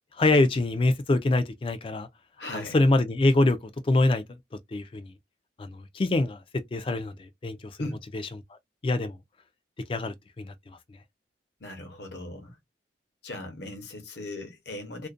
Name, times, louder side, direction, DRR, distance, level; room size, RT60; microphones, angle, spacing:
voice 1, 0.2-2.1 2.5-3.6 3.8-4.2 4.7-5.1 5.6-6.4 6.7-7.8 8.8-9.1 9.9-10.5, left 2 dB, 30° left, 0.3 m, -24 dB
voice 2, 2.4-2.8 7.8-8.0 11.6-12.6 13.2-15.1, left 2 dB, 70° left, 0.8 m, -38 dB
2.4 x 2.1 x 2.4 m
head